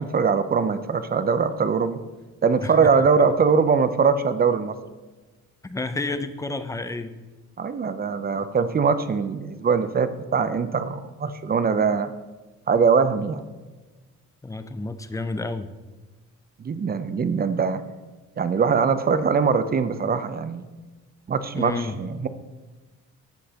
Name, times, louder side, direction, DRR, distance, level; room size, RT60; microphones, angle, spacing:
voice 1, 0.0-2.0 2.4-4.8 7.6-12.1 12.7-13.4 16.6-17.8 18.4-20.6 21.3-22.3, right 5 dB, 30° right, 11 dB, 0.6 m, -22 dB
voice 2, 5.6-7.1 14.4-15.7 21.5-22.0, left 3 dB, 10° left, 10 dB, 0.6 m, -30 dB
11.5 x 7.6 x 2.9 m, 1.2 s
cardioid pair, 90°, 30 cm